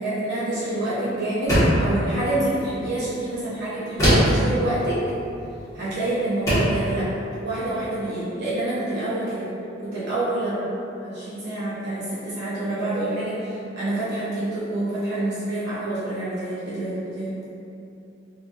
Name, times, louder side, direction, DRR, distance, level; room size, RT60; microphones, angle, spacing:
voice 1, 0.0-5.0 5.7-9.5 9.8-10.6 11.0-17.3, right 1 dB, 60° right, -11 dB, 0.8 m, -27 dB
sound 1, 1.5-1.9 4.0-4.4 5.8-5.9 6.5-6.8, equal, 15° left, 1.3 m, -19 dB
3.6 x 3.2 x 2.5 m, 2.8 s
head